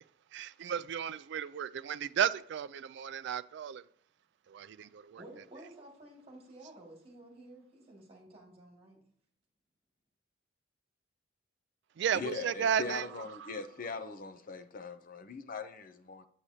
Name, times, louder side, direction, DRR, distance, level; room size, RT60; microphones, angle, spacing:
voice 1, 0.3-3.8 4.5-5.2 12.0-13.1 13.4-13.6, right 8 dB, 55° right, 0.3 m, -34 dB
voice 2, 5.1-9.0, right 1 dB, 30° right, 2.0 m, -52 dB
voice 3, 12.1-16.3, left 4 dB, 45° left, 0.6 m, -41 dB
7.3 x 6.4 x 2.7 m
head